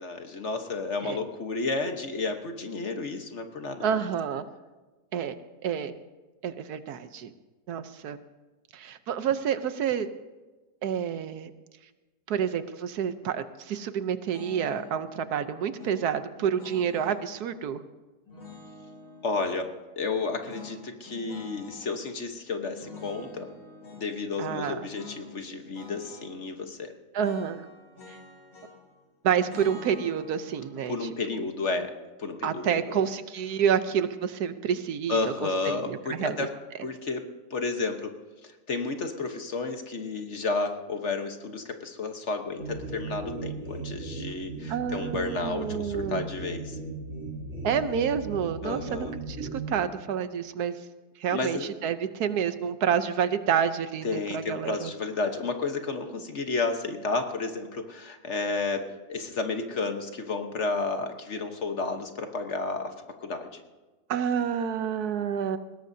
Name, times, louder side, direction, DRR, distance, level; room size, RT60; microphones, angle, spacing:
voice 1, 0.0-4.0 19.2-19.7 20.0-23.5 23.9-26.9 30.9-31.9 32.2-32.7 35.1-36.5 36.8-37.2 37.5-38.1 38.4-46.8 48.6-49.1 51.3-51.7 54.0-63.6, left 3 dB, 50° left, 5 dB, 1.3 m, -32 dB
voice 2, 3.8-4.5 5.1-5.3 5.6-5.9 6.4-7.3 7.7-8.2 8.7-10.1 10.8-11.5 12.3-17.8 24.4-24.9 27.1-27.6 29.2-31.1 32.4-36.5 44.7-46.3 47.6-50.7 51.2-54.9 64.1-65.6, right 8 dB, 75° right, 11 dB, 1.3 m, -29 dB
sound 1, 14.3-15.0 15.8-17.2 18.3-19.7 20.4-21.9 22.8-24.1 24.9-25.3 25.5-26.3 27.2-28.9 29.4-32.5, left 3 dB, 80° left, 3.6 m, -47 dB
sound 2, 42.6-49.8, right 3 dB, 55° right, 4.2 m, -37 dB
21.0 x 17.5 x 2.7 m, 1.2 s
omnidirectional pair, 1.7 m